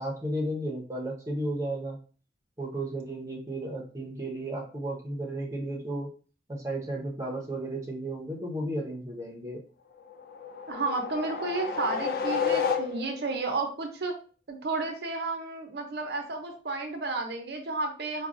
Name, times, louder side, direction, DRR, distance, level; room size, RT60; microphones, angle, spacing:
voice 1, 0.0-2.0 2.6-6.1 6.5-9.6, right 1 dB, 20° right, -1 dB, 0.7 m, -33 dB
sound 1, 10.1-13.3, left 6 dB, 55° left, 0.4 m, -31 dB
voice 2, 10.7-14.1 14.5-18.3, right 3 dB, 70° right, 4 dB, 0.7 m, -32 dB
4.7 x 2.2 x 2.5 m, 0.38 s
head